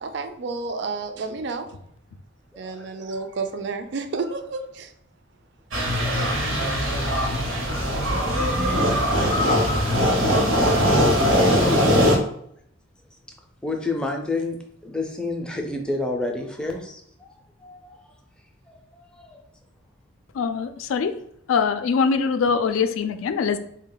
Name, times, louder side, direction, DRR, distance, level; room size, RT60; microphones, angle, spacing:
voice 1, 0.0-1.8 2.6-4.9, right 4 dB, 60° right, 7 dB, 0.4 m, -30 dB
voice 2, 2.5-3.2 6.5-7.9 11.6-12.0 13.6-14.6 14.8-17.3 17.6-18.0 18.7-19.4, left 2 dB, 5° left, 1 dB, 0.4 m, -31 dB
sound 1, 5.7-12.2, equal, 80° right, 0.8 m, -20 dB
voice 3, 20.3-21.1 21.5-23.6, left 5 dB, 85° left, 9 dB, 0.3 m, -22 dB
3.6 x 2.2 x 3.8 m, 0.70 s
head